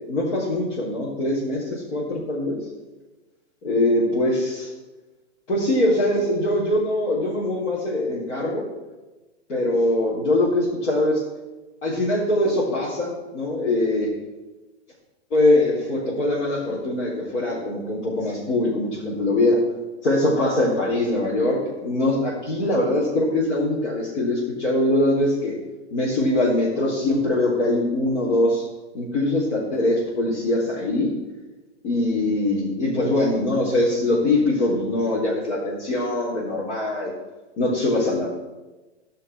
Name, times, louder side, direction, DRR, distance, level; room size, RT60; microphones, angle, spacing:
voice 1, 0.1-2.6 3.6-4.7 5.5-8.7 9.5-11.2 11.8-14.1 15.3-19.6 20.0-25.5 25.9-28.6 28.9-31.1 31.8-37.1 37.6-38.3, left 1 dB, 75° left, -8 dB, 4.0 m, -22 dB
16.0 x 5.7 x 6.3 m, 1.2 s
hypercardioid pair, 140°, 35 cm